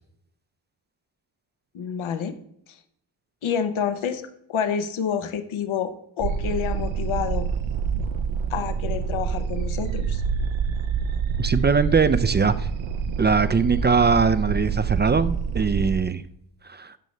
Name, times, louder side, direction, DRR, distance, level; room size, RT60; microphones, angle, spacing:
voice 1, 1.7-2.3 3.4-4.2 4.5-7.5 8.5-10.2, left 7 dB, 85° left, 10 dB, 0.8 m, -28 dB
sound 1, 6.2-16.0, right 6 dB, 70° right, 0.6 m, -27 dB
voice 2, 11.4-12.7 13.2-16.2 16.7-16.9, right 5 dB, 25° right, 14 dB, 0.3 m, -21 dB
12.0 x 5.4 x 3.1 m, 0.76 s
cardioid pair, 70°, 47 cm